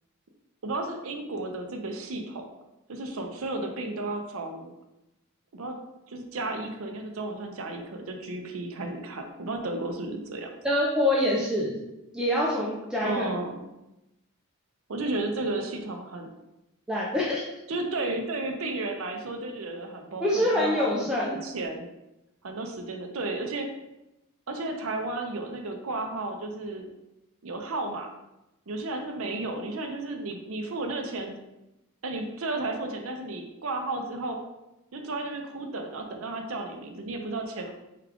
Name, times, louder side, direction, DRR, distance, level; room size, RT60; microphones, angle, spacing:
voice 1, 0.6-2.5 2.9-4.7 5.5-5.8 6.1-10.5 13.0-13.5 14.9-16.3 17.7-21.9 22.4-23.7 24.5-26.9 27.4-28.1 28.7-31.4 32.0-34.4 34.9-37.7, right 2 dB, 70° right, 4 dB, 0.6 m, -33 dB
voice 2, 10.6-11.8 12.1-13.3 16.9-17.5 20.2-21.4, left 1 dB, 5° right, -5 dB, 0.4 m, -25 dB
4.7 x 2.3 x 3.5 m, 0.93 s
head